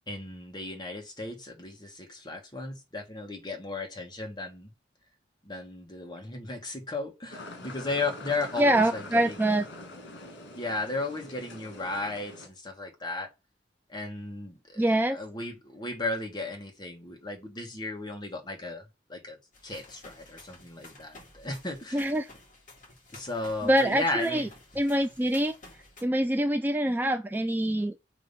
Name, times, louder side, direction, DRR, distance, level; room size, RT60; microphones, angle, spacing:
voice 1, 0.1-4.7 5.4-9.4 10.5-13.3 13.9-19.4 19.6-22.1 23.1-24.5, left 2 dB, 25° left, 1.5 m, -35 dB
sound 1, 7.3-12.5, left 1 dB, 90° left, 1.8 m, -44 dB
voice 2, 8.6-9.6 14.8-15.2 21.9-22.3 23.6-24.5 24.8-25.5 26.0-28.0, right 1 dB, 10° right, 0.4 m, -25 dB
sound 2, 19.5-26.0, left 2 dB, 45° left, 2.1 m, -52 dB
7.2 x 2.9 x 5.2 m
head